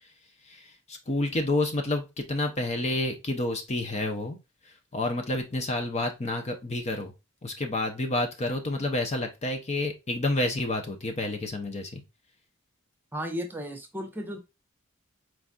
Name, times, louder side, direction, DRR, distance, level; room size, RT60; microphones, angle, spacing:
voice 1, 0.5-4.4 4.7-7.1 7.4-12.0, left 2 dB, 30° left, 4 dB, 0.7 m, -29 dB
voice 2, 13.1-14.4, equal, 10° right, 4 dB, 0.9 m, -34 dB
4.6 x 4.0 x 2.3 m, 0.24 s
head